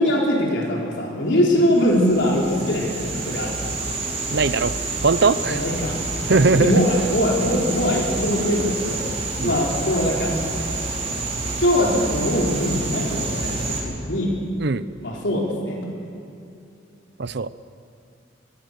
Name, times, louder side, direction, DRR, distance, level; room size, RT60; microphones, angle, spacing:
voice 1, 0.0-3.6 5.5-9.1 9.4-10.3 11.6-14.3 15.0-15.9, equal, 70° left, -2 dB, 4.3 m, -22 dB
sound 1, 1.7-13.8, right 3 dB, 35° right, 4.7 m, -28 dB
voice 2, 4.3-4.7 5.0-5.6 6.3-6.8 9.4-9.6 14.6-14.8 17.2-17.5, right 4 dB, 60° right, 15 dB, 0.7 m, -19 dB
25.0 x 21.5 x 6.8 m, 2.7 s
head